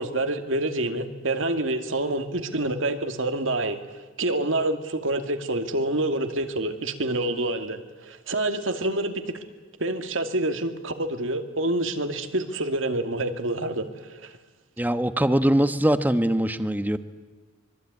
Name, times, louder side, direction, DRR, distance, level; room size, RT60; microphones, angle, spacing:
voice 1, 0.0-3.8 4.2-9.3 9.8-13.9 14.2-14.3, right 2 dB, 75° right, 7 dB, 2.4 m, -27 dB
voice 2, 14.8-17.0, right 1 dB, 10° right, 10 dB, 1.2 m, -22 dB
25.5 x 23.5 x 9.6 m, 1.3 s
head